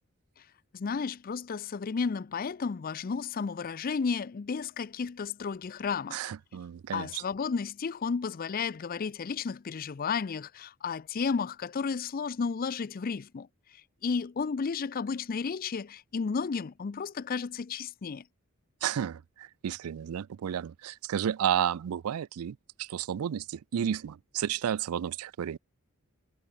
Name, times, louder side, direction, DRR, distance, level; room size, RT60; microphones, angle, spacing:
voice 1, 0.7-6.2 6.9-13.5 14.0-18.2, left 5 dB, 40° left, 0.4 m, -32 dB
voice 2, 6.1-7.2 18.8-25.6, right 9 dB, 85° right, 0.4 m, -32 dB
head